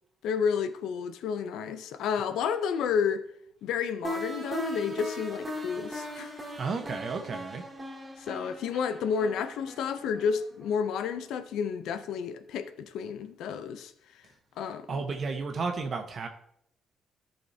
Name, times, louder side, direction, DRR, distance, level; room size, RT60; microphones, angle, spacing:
voice 1, 0.2-3.2 3.6-6.3 8.2-13.9 14.6-14.9, left 6 dB, 85° left, 0.6 m, -31 dB
sound 1, 4.0-10.8, equal, 20° right, 2.5 m, -39 dB
voice 2, 6.6-7.6 14.9-16.3, right 4 dB, 50° right, 1.2 m, -32 dB
14.0 x 5.7 x 2.8 m
cardioid pair, 90°, 0 cm